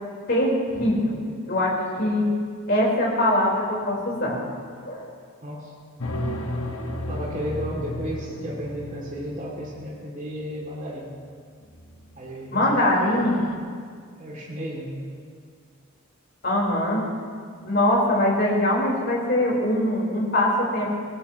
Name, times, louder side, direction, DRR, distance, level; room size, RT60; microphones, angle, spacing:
voice 1, 0.3-2.2 2.7-4.4 4.8-5.1 12.5-13.4 16.4-17.0 17.6-21.0, left 1 dB, 50° left, -4 dB, 4.5 m, -22 dB
voice 2, 5.4-5.7 7.1-11.1 12.1-12.8 14.2-15.0, equal, 35° right, -4 dB, 2.8 m, -33 dB
sound 1, 6.0-9.9 11.7-12.2 12.6-12.7 12.9-13.5, left 1 dB, 75° left, 1.7 m, -33 dB
23.0 x 18.0 x 3.1 m, 2.1 s
head